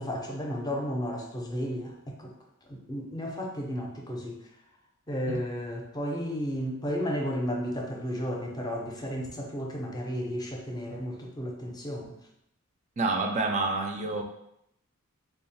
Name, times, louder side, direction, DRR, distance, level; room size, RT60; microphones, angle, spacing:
voice 1, 0.0-2.3 2.7-4.4 5.1-12.2, equal, 20° left, 0 dB, 0.6 m, -33 dB
voice 2, 13.0-14.2, right 3 dB, 30° right, 3 dB, 0.4 m, -28 dB
3.5 x 2.3 x 4.1 m, 0.78 s
head